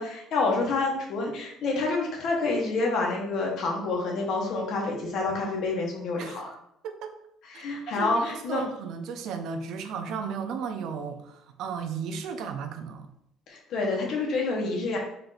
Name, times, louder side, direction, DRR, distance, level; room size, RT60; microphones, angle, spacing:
voice 1, 0.0-6.4 7.4-8.6 13.5-15.0, left 3 dB, 50° left, -1 dB, 1.1 m, -28 dB
voice 2, 6.8-7.1 7.5-13.1, right 6 dB, 60° right, 7 dB, 0.5 m, -35 dB
4.4 x 2.6 x 3.9 m, 0.75 s
cardioid pair, 155°, 0 cm